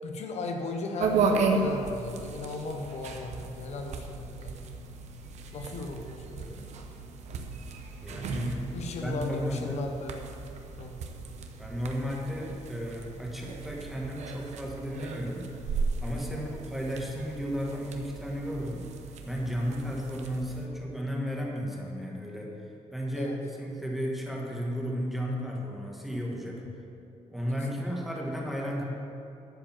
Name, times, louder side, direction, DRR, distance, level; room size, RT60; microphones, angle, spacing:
voice 1, 0.0-4.6 5.5-6.8 8.7-10.3 10.8-11.0 16.3-16.6 23.1-23.4 27.5-27.8, left 3 dB, 60° left, 3 dB, 1.0 m, -36 dB
sound 1, 1.0-20.7, right 4 dB, 65° right, 0.9 m, -35 dB
voice 2, 8.0-8.7 9.0-9.8 11.6-15.4 15.7-18.9 19.2-22.5 22.9-26.7 27.3-28.8, equal, ahead, -2 dB, 1.6 m, -34 dB
12.0 x 5.2 x 7.3 m, 2.8 s
cardioid pair, 145°, 13 cm